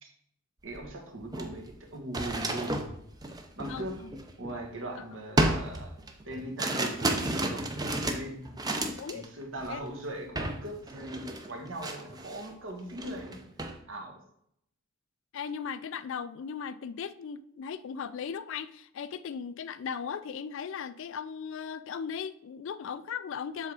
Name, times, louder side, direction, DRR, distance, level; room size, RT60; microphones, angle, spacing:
voice 1, 0.6-2.9 3.6-4.0 4.4-5.9 6.2-8.6 9.1-13.4 13.9-14.2, right 1 dB, 60° right, 1.3 m, -40 dB
sound 1, 0.7-0.8 1.2-4.8 5.4-9.3 9.6-9.9 10.4-10.6 10.9-12.5 12.9-13.8, right 2 dB, 20° right, 0.6 m, -32 dB
voice 2, 3.7-4.1 8.8-9.3 9.7-9.8 15.3-23.7, left 7 dB, 60° left, 0.3 m, -37 dB
7.3 x 3.6 x 4.8 m
head